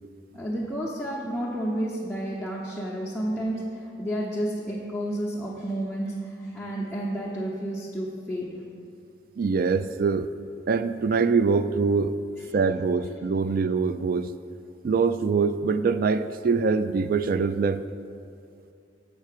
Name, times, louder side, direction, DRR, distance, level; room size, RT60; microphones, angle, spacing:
voice 1, 0.3-8.6, right 1 dB, 5° left, -7 dB, 0.8 m, -31 dB
voice 2, 9.4-10.3 10.7-12.2 12.5-14.3 14.8-17.8, right 5 dB, 55° right, 13 dB, 0.3 m, -24 dB
7.3 x 4.5 x 6.6 m, 2.5 s
head